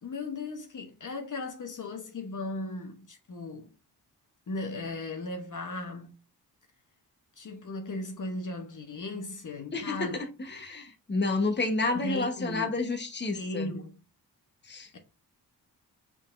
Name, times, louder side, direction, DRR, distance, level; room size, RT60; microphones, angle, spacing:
voice 1, 0.0-3.7 4.5-6.2 7.4-10.2 11.9-12.7 13.3-14.0 14.9-15.0, left 2 dB, 50° left, 1.0 m, -37 dB
voice 2, 9.7-13.7 14.7-14.9, left 3 dB, 25° left, 1.1 m, -30 dB
5.2 x 3.9 x 2.5 m
cardioid pair, 70°, 40 cm